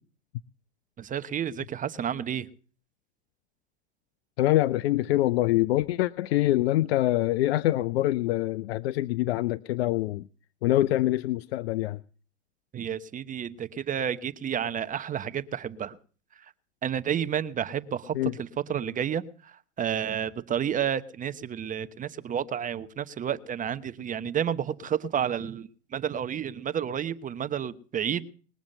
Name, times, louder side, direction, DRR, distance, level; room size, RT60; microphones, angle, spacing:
voice 1, 1.0-2.5 12.7-16.0 16.8-19.2 19.8-28.2, right 9 dB, 25° right, 12 dB, 1.0 m, -30 dB
voice 2, 4.4-10.2 10.6-12.0 18.1-18.3, left 15 dB, 65° left, 18 dB, 0.7 m, -25 dB
21.0 x 7.2 x 7.9 m, 0.41 s
hypercardioid pair, 105°, 34 cm